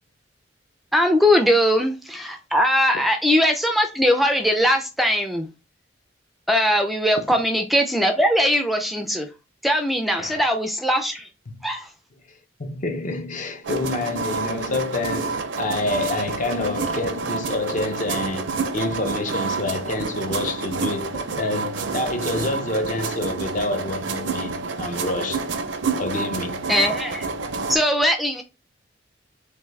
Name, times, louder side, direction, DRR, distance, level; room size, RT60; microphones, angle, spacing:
voice 1, 0.9-5.5 6.5-9.3 9.6-11.3 11.6-11.9 26.7-27.3 27.7-28.4, equal, ahead, 0.3 m, -20 dB
voice 2, 12.6-25.5 26.0-26.7, left 2 dB, 45° left, 0.6 m, -27 dB
sound 1, 13.6-27.8, right 4 dB, 70° right, 0.5 m, -28 dB
3.5 x 2.6 x 3.1 m
head